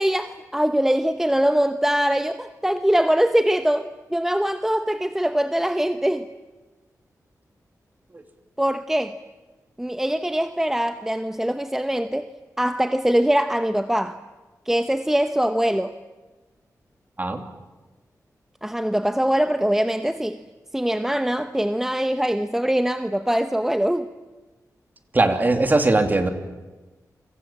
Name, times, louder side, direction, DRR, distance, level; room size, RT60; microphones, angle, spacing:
voice 1, 0.0-6.3 8.6-9.2 9.8-12.3 12.6-14.2 14.7-15.9 18.6-20.4 20.7-24.1, equal, 5° right, 9 dB, 0.9 m, -22 dB
voice 2, 25.1-26.3, right 2 dB, 30° right, 6 dB, 2.9 m, -20 dB
29.0 x 25.5 x 7.5 m, 1.2 s
wide cardioid pair, 115°, 6 cm